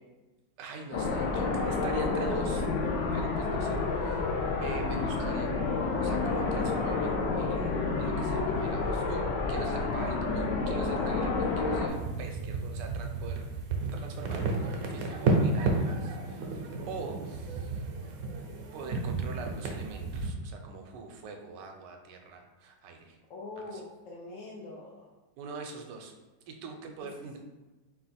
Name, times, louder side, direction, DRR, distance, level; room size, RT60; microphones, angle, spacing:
voice 1, 0.6-2.7 3.1-4.3 4.6-5.5 6.0-13.5 13.9-17.8 18.7-23.2 23.6-23.8 25.4-26.1 26.5-27.4, right 4 dB, 80° right, 3 dB, 1.2 m, -43 dB
sound 1, 0.9-11.9, left 3 dB, 90° left, 1.3 m, -29 dB
sound 2, 11.9-20.3, right 3 dB, 65° right, 1.0 m, -32 dB
voice 2, 23.3-25.0, left 2 dB, 65° left, -3 dB, 0.8 m, -43 dB
4.3 x 2.4 x 4.1 m, 1.2 s
omnidirectional pair, 1.9 m